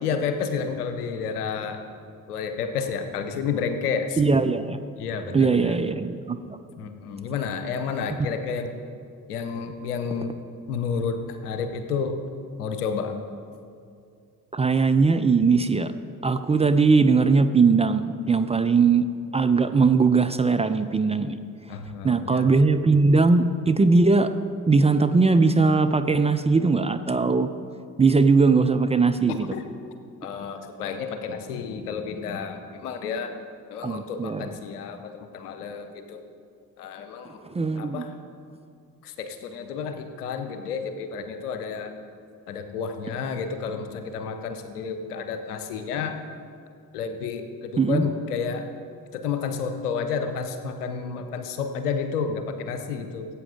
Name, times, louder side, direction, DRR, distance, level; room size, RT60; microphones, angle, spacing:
voice 1, 0.0-1.8 2.3-4.2 5.0-5.8 6.8-8.7 9.3-10.4 10.7-12.2 12.6-13.2 21.7-22.5 29.5-29.6 30.2-33.3 33.7-36.2 36.8-37.4 37.8-38.1 39.0-41.9 42.5-46.2 46.9-48.7 49.1-53.3, left 6 dB, 80° left, 8 dB, 0.9 m, -30 dB
voice 2, 4.2-4.8 5.3-6.6 14.5-15.9 16.2-19.1 19.3-21.4 22.0-24.3 24.7-27.5 28.0-29.5 33.8-34.5 37.4-38.1 47.8-48.1, right 4 dB, 15° right, 9 dB, 0.4 m, -20 dB
17.0 x 8.2 x 3.8 m, 2.3 s
figure-of-eight pair, 45°, 45 cm